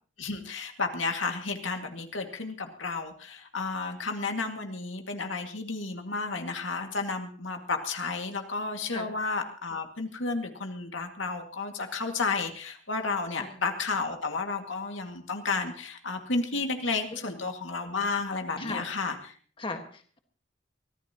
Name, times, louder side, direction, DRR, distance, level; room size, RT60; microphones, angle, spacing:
voice 1, 0.2-19.3, left 4 dB, 85° left, 4 dB, 2.2 m, -32 dB
voice 2, 17.1-17.4 18.6-18.9 19.6-20.2, left 2 dB, 30° left, 5 dB, 1.7 m, -38 dB
23.5 x 15.5 x 3.0 m, 0.42 s
head